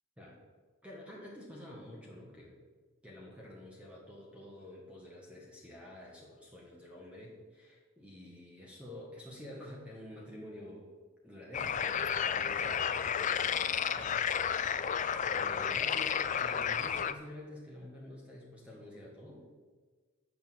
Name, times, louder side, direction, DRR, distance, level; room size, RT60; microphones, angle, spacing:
voice 1, 0.8-2.6 3.0-10.9 11.2-12.8 13.1-14.1 14.8-19.5, left 1 dB, 5° right, -3 dB, 1.6 m, -49 dB
sound 1, 11.5-17.1, left 8 dB, 35° left, 0.4 m, -32 dB
8.7 x 6.4 x 7.7 m, 1.4 s
head